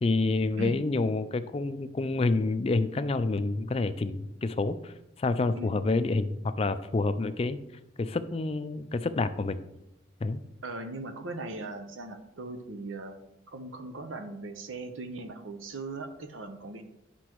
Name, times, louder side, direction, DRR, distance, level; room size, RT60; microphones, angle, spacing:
voice 1, 0.0-7.6 8.0-9.6 10.2-10.4, left 3 dB, 30° left, 11 dB, 0.3 m, -28 dB
voice 2, 5.6-5.9 10.6-13.2 13.5-16.8, right 3 dB, 90° right, 7 dB, 0.8 m, -39 dB
9.9 x 6.0 x 3.0 m, 0.90 s
head